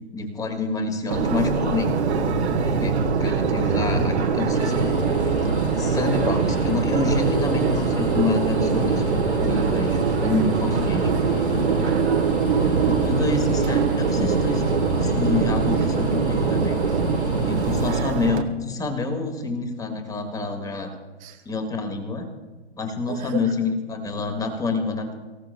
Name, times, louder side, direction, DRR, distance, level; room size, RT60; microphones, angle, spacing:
voice 1, 0.1-1.9 2.6-4.9 5.8-11.1 12.8-14.7 14.9-16.8 17.4-20.9 21.4-22.3 22.7-25.1, left 4 dB, 10° left, 5 dB, 1.8 m, -27 dB
Subway metro underground, 1.1-18.4, right 5 dB, 65° right, 1.4 m, -22 dB
sound 1, 4.5-17.9, left 3 dB, 60° left, 4.7 m, -38 dB
voice 2, 11.1-11.7 11.9-12.5 21.2-21.4 23.1-23.6, right 4 dB, 45° right, 2 dB, 2.0 m, -38 dB
24.5 x 15.5 x 2.2 m, 1.3 s
figure-of-eight pair, 115°, 35 cm